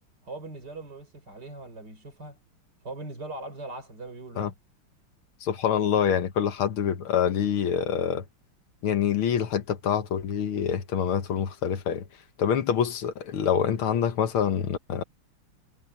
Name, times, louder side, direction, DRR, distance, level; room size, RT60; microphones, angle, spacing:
voice 1, 0.0-2.4 2.8-4.6, right 2 dB, 50° right, 6.0 m, -40 dB
voice 2, 5.4-8.2 8.8-12.0 12.4-15.0, left 8 dB, 75° left, 2.0 m, -26 dB
omnidirectional pair, 2.4 m